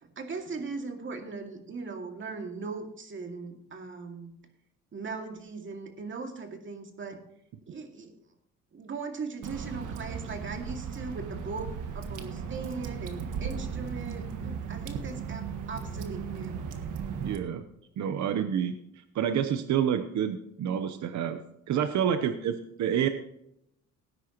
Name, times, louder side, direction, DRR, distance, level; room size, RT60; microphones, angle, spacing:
voice 1, 0.0-4.3 4.9-7.2 7.7-8.1 8.7-16.6, right 4 dB, 40° right, 3 dB, 2.2 m, -39 dB
Water / Drip, 9.4-17.4, right 6 dB, 90° right, 1.6 m, -36 dB
voice 2, 17.2-17.7 18.0-21.4 21.7-23.1, right 8 dB, 70° right, 9 dB, 0.9 m, -28 dB
18.0 x 9.8 x 3.0 m, 0.77 s
cardioid pair, 120°, 30 cm